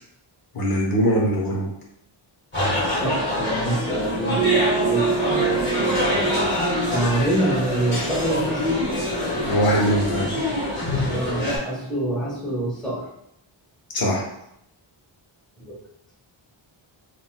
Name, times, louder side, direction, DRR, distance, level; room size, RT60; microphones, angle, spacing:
voice 1, 0.5-1.7 9.4-10.3 13.9-14.2, equal, 45° left, -3 dB, 0.9 m, -21 dB
sound 1, 2.5-11.6, left 1 dB, 20° left, 1.4 m, -25 dB
voice 2, 2.8-5.1 6.9-8.8 10.3-10.4 11.1-13.1 15.6-15.7, right 1 dB, ahead, -7 dB, 1.1 m, -26 dB
sound 2, 4.0-9.2 9.5-9.6, right 8 dB, 40° right, 0.5 m, -27 dB
3.9 x 2.4 x 2.2 m, 0.77 s
wide cardioid pair, 135°, 49 cm